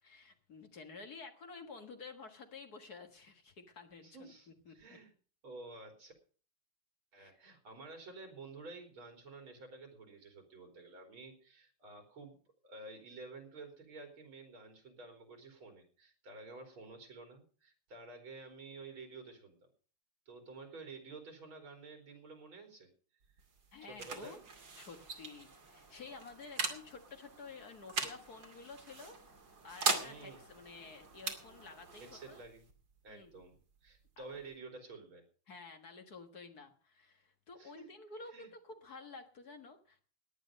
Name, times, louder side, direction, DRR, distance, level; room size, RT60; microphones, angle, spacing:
voice 1, 0.0-5.0 7.2-7.4 23.7-24.4 24.7-29.2 29.5-32.4 33.1-33.4 34.2-34.4 35.5-40.1, left 4 dB, 50° left, 6 dB, 2.0 m, -51 dB
voice 2, 4.0-5.1 5.4-6.1 7.1-12.4 12.6-19.7 20.3-22.9 23.8-24.4 30.0-30.4 32.0-32.7 33.0-35.2 37.6-37.9 38.3-38.5, right 3 dB, 80° right, 4 dB, 4.5 m, -51 dB
sound 1, 23.2-34.6, right 4 dB, 65° right, 3.2 m, -42 dB
17.5 x 10.5 x 5.3 m, 0.40 s
omnidirectional pair, 2.2 m